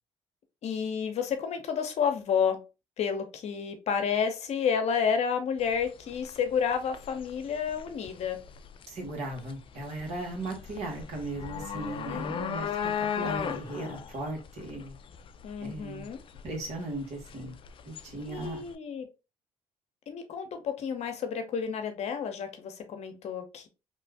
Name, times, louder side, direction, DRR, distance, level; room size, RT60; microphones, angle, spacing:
voice 1, 0.6-2.6 3.0-8.4 12.1-12.7 15.4-16.2 18.3-19.1 20.1-23.7, left 7 dB, 60° left, 0.8 m, -30 dB
sound 1, 5.6-18.7, left 8 dB, 45° left, 0.3 m, -38 dB
voice 2, 8.9-12.7 13.0-14.9 15.6-16.1 16.4-17.5 17.8-18.6, right 2 dB, 65° right, 1.6 m, -37 dB
3.0 x 2.4 x 3.4 m
supercardioid pair, 70°, 12 cm